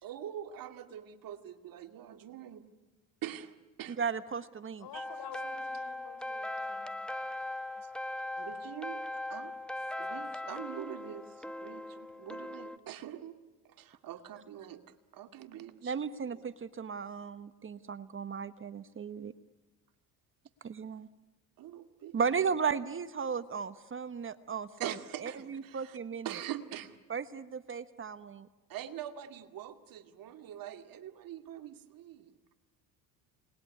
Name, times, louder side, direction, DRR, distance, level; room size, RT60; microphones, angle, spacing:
voice 1, 0.0-2.6 3.2-4.0 4.9-5.0 8.4-9.6 10.0-13.4 13.6-14.8 15.1-16.0 16.3-16.4 21.6-22.2 24.8-26.0 26.2-27.0 28.7-32.3, right 11 dB, 55° right, 7 dB, 2.4 m, -44 dB
voice 2, 4.0-4.9 15.8-19.3 20.6-21.1 22.1-24.9 25.2-26.3 27.1-28.5, right 6 dB, 30° right, 13 dB, 1.2 m, -35 dB
voice 3, 4.8-6.9, left 8 dB, 60° left, 10 dB, 4.7 m, -49 dB
sound 1, 4.9-12.8, left 1 dB, ahead, 1.6 m, -39 dB
29.5 x 20.5 x 9.6 m, 1.2 s
supercardioid pair, 80°, 40 cm